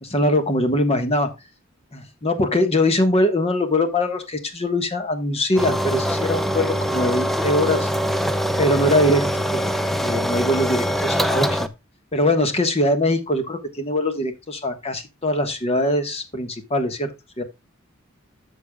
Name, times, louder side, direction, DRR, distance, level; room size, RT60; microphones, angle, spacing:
voice 1, 0.0-1.3 1.9-7.9 8.6-9.7 10.0-11.7 12.1-17.1 17.4-17.5, left 1 dB, 30° left, 7 dB, 1.3 m, -22 dB
sound 1, 5.6-11.7, equal, ahead, 0.6 m, -23 dB
13.5 x 6.7 x 2.3 m, 0.24 s
head